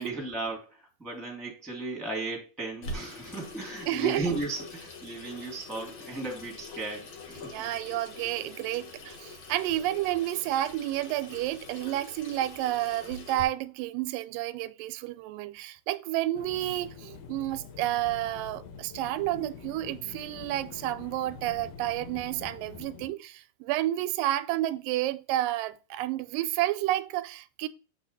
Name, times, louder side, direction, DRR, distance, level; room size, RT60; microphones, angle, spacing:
voice 1, 0.0-7.4, right 2 dB, ahead, 1.6 m, -35 dB
Water tap faucet / Sink (filling or washing), 2.8-13.4, left 3 dB, 60° left, 1.3 m, -44 dB
voice 2, 3.9-4.4 7.4-27.7, right 14 dB, 90° right, 2.2 m, -30 dB
sound 1, 16.3-23.1, left 6 dB, 75° left, 1.5 m, -46 dB
7.8 x 4.2 x 3.9 m
omnidirectional pair, 3.9 m